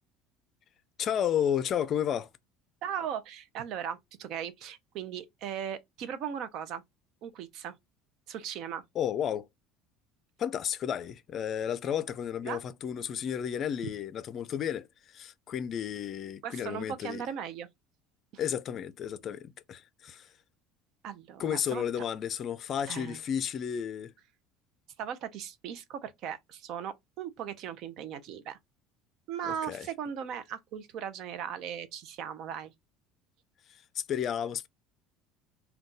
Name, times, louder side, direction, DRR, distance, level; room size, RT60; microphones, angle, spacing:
voice 1, 1.0-2.3 9.0-9.5 10.4-17.2 18.4-20.3 21.4-24.1 29.4-29.9 34.0-34.7, left 9 dB, 50° left, 0.4 m, -32 dB
voice 2, 2.8-6.8 7.2-7.8 8.3-8.8 12.4-12.6 16.4-17.7 18.3-18.4 21.0-21.8 22.9-23.2 25.0-28.6 29.3-32.7, right 8 dB, 60° right, 0.5 m, -38 dB
2.5 x 2.3 x 3.7 m
supercardioid pair, 90°, 0 cm